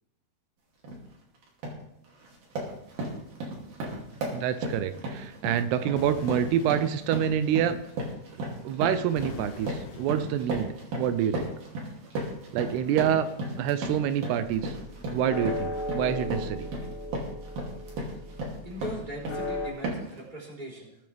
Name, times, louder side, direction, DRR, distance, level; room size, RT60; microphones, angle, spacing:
sound 1, 0.8-1.0 1.4-1.9 2.2-19.5 19.8-20.2, right 1 dB, 65° right, 4.4 m, -35 dB
voice 1, 4.3-7.8 8.3-10.7 11.0-11.5 12.5-13.3 13.6-14.8 15.1-16.7, right 9 dB, 85° right, 11 dB, 2.7 m, -27 dB
sound 2, 6.0-7.4 9.2-10.6, left 12 dB, 80° left, 2.5 m, -45 dB
sound 3, 14.4-19.7, left 1 dB, 40° left, 1.9 m, -36 dB
voice 2, 18.6-21.0, right 1 dB, 10° right, -4 dB, 3.7 m, -39 dB
21.0 x 8.7 x 3.5 m, 0.79 s
omnidirectional pair, 4.6 m